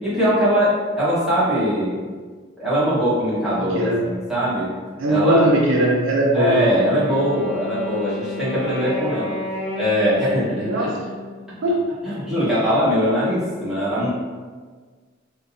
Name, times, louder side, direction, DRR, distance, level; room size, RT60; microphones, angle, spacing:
voice 1, 0.0-2.0 2.6-4.7 5.1-5.5 6.3-9.4 9.7-10.9 12.0-14.1, equal, ahead, -12 dB, 1.4 m, -21 dB
voice 2, 5.0-6.6 10.6-10.9 11.6-11.7, right 1 dB, 70° right, -2 dB, 0.5 m, -19 dB
Wind instrument woodwind instrument, 6.7-11.7, left 1 dB, 80° left, 1.0 m, -32 dB
3.6 x 2.6 x 2.7 m, 1.5 s
head